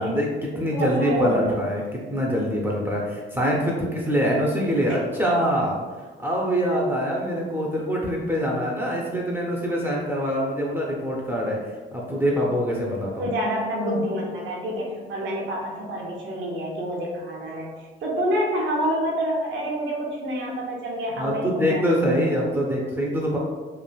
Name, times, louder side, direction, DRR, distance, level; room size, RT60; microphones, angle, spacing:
voice 1, 0.0-5.8 6.2-11.6 11.9-13.3 21.2-23.4, equal, 10° right, -3 dB, 0.5 m, -24 dB
voice 2, 0.5-1.5 4.9-5.0 13.2-17.7 18.0-22.4, equal, 70° right, -3 dB, 0.8 m, -27 dB
3.1 x 2.4 x 2.3 m, 1.4 s
cardioid pair, 90°, 20 cm